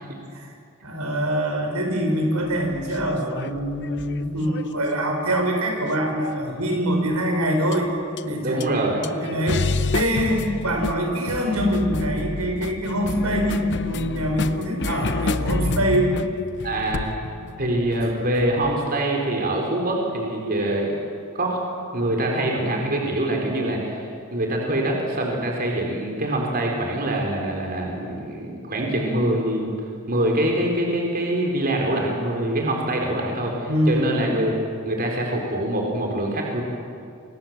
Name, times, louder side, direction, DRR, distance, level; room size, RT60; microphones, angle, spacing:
voice 1, 0.8-7.9 8.2-8.6 8.9-16.2 33.6-34.0, equal, 90° right, 2 dB, 6.4 m, -24 dB
sound 1, 2.5-5.1 6.0-6.5 7.7-7.8 8.2-8.3 8.6-8.7 9.0-18.8, left 3 dB, 55° left, 0.8 m, -29 dB
voice 2, 8.4-9.1 16.6-17.1 17.6-20.9 21.3-21.6 21.9-24.1 24.3-29.7 30.1-34.5 34.8-36.6, right 1 dB, 45° right, 0 dB, 4.5 m, -24 dB
30.0 x 25.0 x 7.6 m, 2.4 s
head